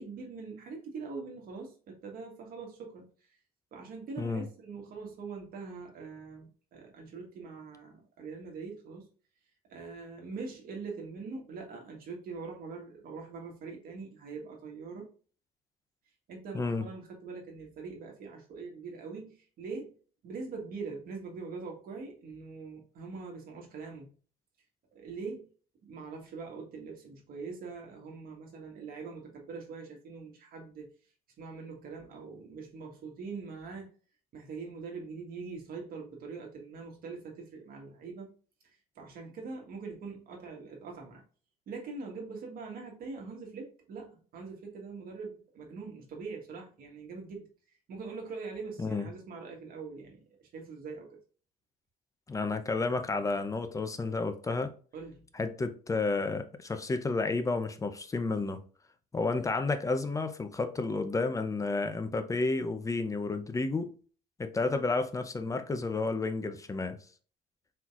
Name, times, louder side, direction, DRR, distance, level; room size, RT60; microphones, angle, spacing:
voice 1, 0.0-3.1 3.7-9.1 9.7-15.1 16.3-19.9 20.2-24.1 24.9-25.5 25.8-30.9 31.4-33.9 34.3-38.3 38.6-41.2 41.7-51.2 54.9-55.3, right 4 dB, 60° right, 1.5 m, -43 dB
voice 2, 16.5-16.9 48.8-49.0 52.3-54.7 55.3-58.6 59.1-64.0 64.4-67.0, left 3 dB, 20° left, 0.6 m, -31 dB
4.4 x 3.8 x 2.4 m
cardioid pair, 110°, 17 cm